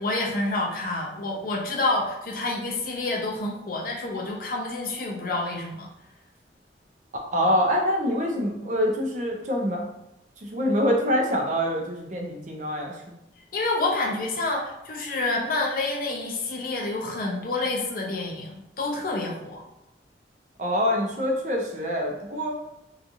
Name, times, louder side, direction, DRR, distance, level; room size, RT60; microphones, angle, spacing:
voice 1, 0.0-5.9 13.5-19.6, left 2 dB, 50° left, 0 dB, 0.5 m, -28 dB
voice 2, 7.3-9.8 10.4-13.1 20.6-22.6, equal, 40° right, 0 dB, 0.4 m, -25 dB
2.8 x 2.3 x 2.5 m, 0.87 s
head